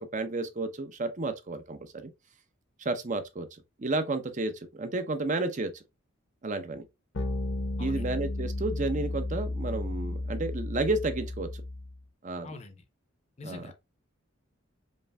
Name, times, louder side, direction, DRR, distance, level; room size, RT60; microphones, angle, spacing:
voice 1, 0.0-2.1 2.8-5.8 6.4-6.8 7.8-11.6 12.2-12.5 13.4-13.7, right 2 dB, 35° right, 0.6 m, -32 dB
sound 1, 7.1-11.9, left 2 dB, 70° left, 0.8 m, -33 dB
voice 2, 7.8-8.1 12.4-12.8 13.4-13.7, left 3 dB, 30° left, 0.6 m, -43 dB
5.3 x 2.6 x 2.2 m
head